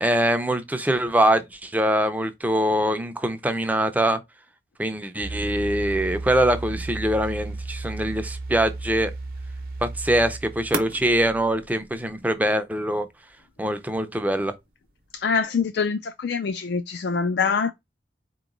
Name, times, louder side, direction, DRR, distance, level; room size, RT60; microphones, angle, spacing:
voice 1, 0.0-4.2 4.8-9.1 9.8-13.1 13.6-14.5, right 1 dB, 10° right, 0.5 m, -23 dB
sound 1, 5.2-12.2, right 3 dB, 50° right, 0.8 m, -33 dB
voice 2, 15.1-17.7, left 5 dB, 65° left, 0.4 m, -24 dB
4.3 x 3.0 x 3.8 m
head